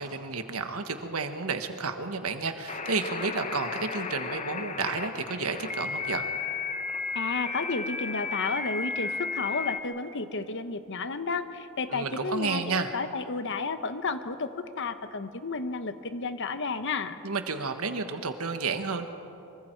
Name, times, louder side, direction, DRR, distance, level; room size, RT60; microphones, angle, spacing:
voice 1, 0.0-6.3 11.9-12.9 17.2-19.1, right 4 dB, 70° right, 7 dB, 1.5 m, -31 dB
sound 1, 2.7-9.8, left 4 dB, 30° left, 0.9 m, -34 dB
voice 2, 7.1-12.6 12.9-14.5 14.8-17.2, left 4 dB, 55° left, 10 dB, 1.0 m, -32 dB
25.0 x 24.0 x 4.7 m, 2.8 s
head